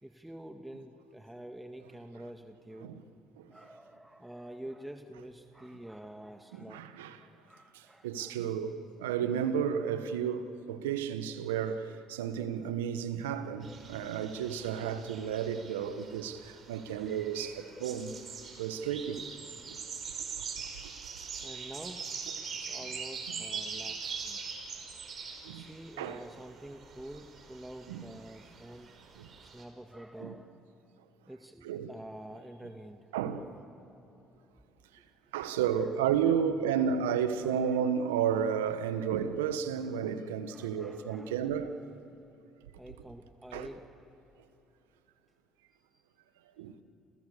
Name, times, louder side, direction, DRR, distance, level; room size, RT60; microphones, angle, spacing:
voice 1, 0.0-3.0 3.5-6.9 7.5-8.3 21.4-22.1 22.5-24.4 25.5-28.9 29.4-30.6 31.3-33.1 35.5-36.1 36.4-37.0 37.4-37.8 40.5-41.4 41.6-41.8 42.8-43.8 45.9-46.0, right 1 dB, 10° right, 1.9 m, -48 dB
voice 2, 6.5-7.2 7.7-18.1 18.6-19.3 19.7-19.8 23.3-23.4 25.4-25.7 26.0-26.2 27.9-28.0 29.2-29.3 30.2-30.3 31.6-31.9 33.1-33.5 35.3-41.7 43.5-43.7 46.6-46.7, right 8 dB, 85° right, 1.5 m, -32 dB
sound 1, 13.6-29.6, right 5 dB, 50° right, 5.5 m, -43 dB
30.0 x 29.0 x 6.9 m
hypercardioid pair, 60°, 0 cm